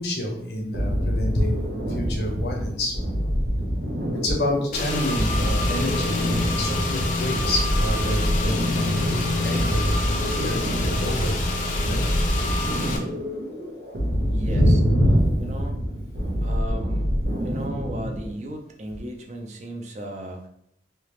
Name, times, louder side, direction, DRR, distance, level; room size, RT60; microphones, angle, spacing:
voice 1, 0.0-3.0 4.1-9.1 9.4-11.3 11.8-12.0 14.4-15.3 17.6-17.7, equal, 65° left, 0 dB, 0.9 m, -26 dB
sound 1, 0.7-18.3, equal, 80° right, 1.0 m, -27 dB
Car / Engine, 4.7-13.0, left 2 dB, 45° left, 0.5 m, -27 dB
voice 2, 14.3-14.8 15.4-15.8 16.4-17.1 17.4-20.5, right 1 dB, 40° right, 2 dB, 0.5 m, -36 dB
3.3 x 2.8 x 3.1 m, 0.72 s
head